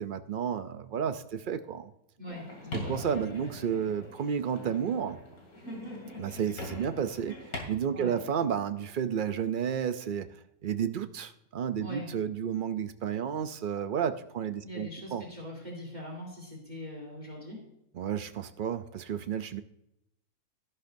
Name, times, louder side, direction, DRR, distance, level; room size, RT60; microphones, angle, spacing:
voice 1, 0.0-1.9 2.9-5.2 6.2-7.4 7.7-10.3 10.6-15.2 18.0-19.6, right 8 dB, 80° right, 10 dB, 0.4 m, -31 dB
voice 2, 2.2-3.0 7.9-8.2 11.8-12.1 14.6-17.6, left 1 dB, 25° right, -2 dB, 3.2 m, -42 dB
sound 1, 2.3-7.6, left 1 dB, 70° left, 3.1 m, -41 dB
13.5 x 11.5 x 2.6 m, 0.81 s
omnidirectional pair, 1.6 m